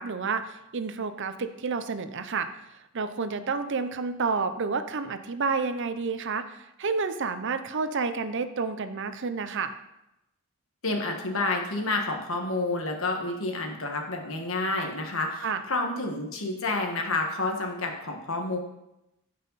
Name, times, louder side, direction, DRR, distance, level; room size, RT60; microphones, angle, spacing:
voice 1, 0.0-9.7 15.4-15.6, right 4 dB, 55° right, 10 dB, 0.6 m, -30 dB
voice 2, 10.8-18.6, left 2 dB, 65° left, 2 dB, 1.6 m, -29 dB
15.0 x 5.6 x 4.1 m, 0.90 s
head